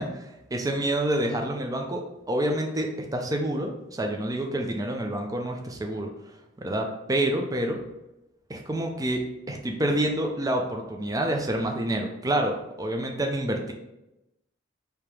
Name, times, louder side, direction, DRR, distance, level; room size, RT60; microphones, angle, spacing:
voice 1, 0.0-2.0 2.3-6.1 6.6-7.8 8.5-13.7, right 1 dB, 20° right, 2 dB, 0.5 m, -28 dB
3.5 x 2.9 x 4.7 m, 0.91 s
head